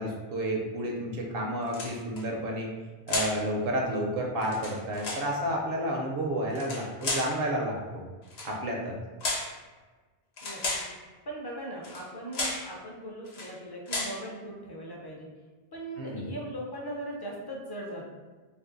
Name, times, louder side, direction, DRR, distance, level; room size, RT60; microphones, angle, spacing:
voice 1, 0.0-2.7 3.1-8.0 8.4-9.0 16.0-16.3, right 1 dB, 70° right, 0 dB, 0.8 m, -31 dB
sound 1, 1.7-2.2 3.1-3.4 4.4-5.3 6.5-7.4 8.3-8.5 9.2-9.6 10.4-10.9 11.8-12.1 12.3-12.7 13.3-13.5 13.9-14.2, left 2 dB, 85° left, 1.0 m, -33 dB
voice 2, 10.4-10.8 11.3-15.3 15.7-18.1, right 1 dB, 30° left, -2 dB, 0.5 m, -39 dB
2.6 x 2.6 x 3.7 m, 1.3 s
omnidirectional pair, 1.0 m